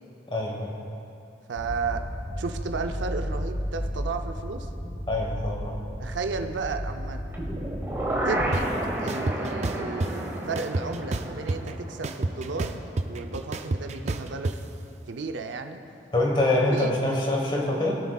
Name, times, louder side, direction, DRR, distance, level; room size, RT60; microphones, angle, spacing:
voice 1, 0.3-0.7 5.1-5.7 16.1-17.9, left 1 dB, 25° left, -1 dB, 1.3 m, -25 dB
voice 2, 1.5-2.0 2.4-4.7 6.0-7.2 8.2-12.8 13.0-14.6 15.1-15.8 16.7-16.9, right 4 dB, 90° right, 6 dB, 0.6 m, -33 dB
sound 1, 1.6-8.5, equal, 80° left, 1.7 m, -34 dB
sound 2, 7.3-13.3 13.6-13.7, right 1 dB, 15° right, 1.4 m, -32 dB
sound 3, 8.5-8.6 9.1-10.1 10.6-11.7 12.0-14.6, right 2 dB, 40° right, 0.4 m, -28 dB
21.5 x 7.2 x 2.4 m, 2.8 s
head